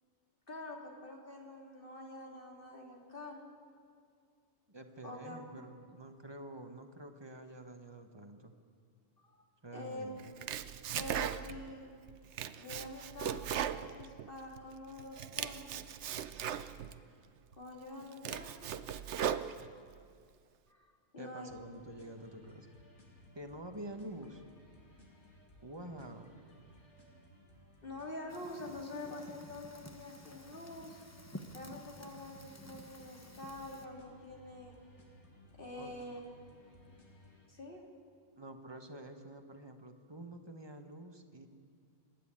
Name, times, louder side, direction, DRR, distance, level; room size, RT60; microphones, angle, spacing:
voice 1, 0.5-3.5 5.0-5.4 9.2-9.4 9.7-10.1 11.0-11.9 12.6-16.0 17.6-18.7 20.7-21.5 27.8-31.0 31.5-34.7 35.6-36.2 37.5-37.8, left 2 dB, 50° left, 0 dB, 3.2 m, -46 dB
voice 2, 4.7-8.5 9.6-10.3 21.2-22.7 23.3-24.4 25.6-26.3 35.7-35.9 38.4-41.5, right 1 dB, 20° right, 6 dB, 1.4 m, -48 dB
Domestic sounds home sounds, 10.2-11.7 12.1-14.6 15.0-17.0 17.5-17.6 18.0-20.0, right 9 dB, 75° right, 1.0 m, -38 dB
sound 1, 21.5-37.5, equal, 80° left, 3.1 m, -60 dB
Fire, 28.3-33.8, left 1 dB, 15° left, 1.0 m, -52 dB
27.0 x 11.0 x 8.8 m, 2.3 s
omnidirectional pair, 1.2 m